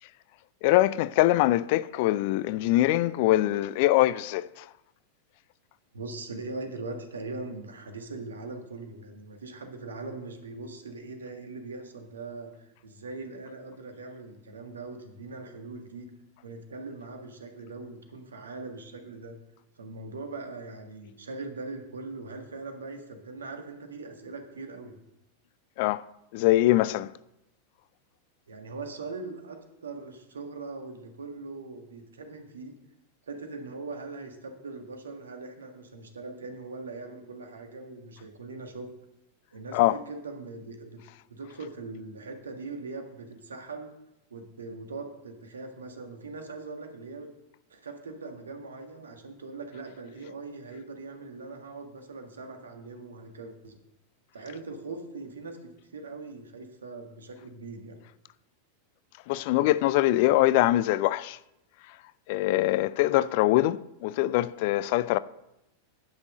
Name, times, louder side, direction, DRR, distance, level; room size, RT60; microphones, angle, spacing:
voice 1, 0.6-4.6 25.8-26.0 26.3-27.1 39.7-40.0 59.3-61.4 62.3-65.2, left 16 dB, 50° left, 0.3 m, -23 dB
voice 2, 5.9-16.1 16.4-19.4 19.8-25.0 28.5-32.7 33.3-38.9 39.5-41.0 41.3-43.9 44.3-47.3 47.7-53.8 54.3-58.0, right 3 dB, 70° right, 1.6 m, -41 dB
10.5 x 6.0 x 6.5 m
figure-of-eight pair, 90°, 0 cm